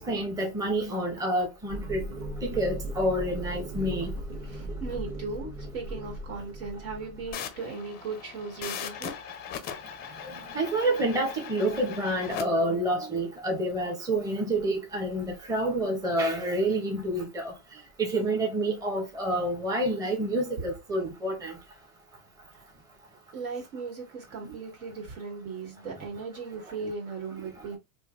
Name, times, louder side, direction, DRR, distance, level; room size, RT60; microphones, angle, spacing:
voice 1, 0.0-2.0 2.4-4.1 10.2-17.5 18.0-21.6 24.4-24.6, right 1 dB, 10° right, 0.7 m, -28 dB
sound 1, 1.7-7.3, right 1 dB, 30° right, 1.2 m, -37 dB
voice 2, 4.5-9.1 20.6-20.7 22.5-22.6 23.3-27.8, right 4 dB, 75° right, 2.0 m, -37 dB
sound 2, 7.3-12.4, left 8 dB, 25° left, 0.4 m, -39 dB
3.1 x 2.6 x 2.5 m
hypercardioid pair, 120°, 42 cm